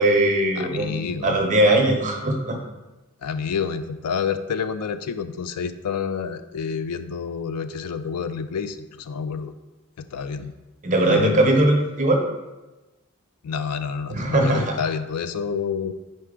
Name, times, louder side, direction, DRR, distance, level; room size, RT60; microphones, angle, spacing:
voice 1, 0.0-2.6 10.8-12.3 14.1-14.8, right 1 dB, 35° right, 2 dB, 0.7 m, -20 dB
voice 2, 0.6-1.4 3.2-9.5 10.0-10.5 11.0-11.5 13.4-15.9, left 6 dB, 85° left, 11 dB, 0.4 m, -28 dB
4.5 x 4.2 x 4.9 m, 1.1 s
head